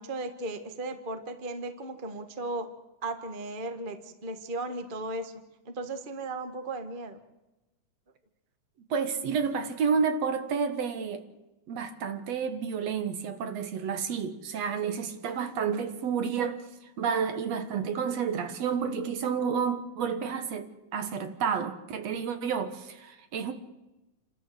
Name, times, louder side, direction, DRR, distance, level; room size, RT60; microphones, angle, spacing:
voice 1, 0.0-2.7 3.0-5.3 5.6-7.2, right 2 dB, 30° right, 0.9 m, -36 dB
voice 2, 8.9-11.2 11.7-23.5, right 6 dB, 60° right, 2.4 m, -30 dB
29.0 x 13.0 x 7.9 m
omnidirectional pair, 3.6 m